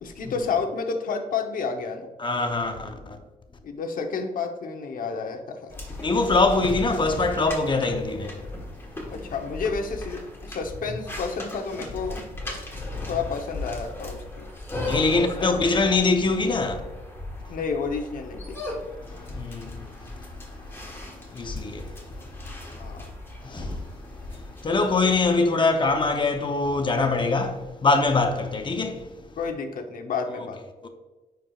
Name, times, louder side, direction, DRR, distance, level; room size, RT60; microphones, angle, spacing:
voice 1, 0.0-2.1 3.6-5.7 9.1-10.2 10.5-12.2 13.1-14.5 15.1-15.5 17.5-18.8 22.7-23.1 29.4-30.6, left 5 dB, 70° left, 0.9 m, -30 dB
voice 2, 2.2-3.2 6.0-8.4 12.9-13.1 14.8-16.8 19.3-19.9 21.3-21.9 23.4-23.8 24.3-29.1 30.8-30.9, left 3 dB, 30° left, 0.7 m, -23 dB
sound 1, 5.7-25.3, left 2 dB, 15° left, 1.4 m, -37 dB
9.8 x 4.6 x 2.4 m
wide cardioid pair, 130°, 15 cm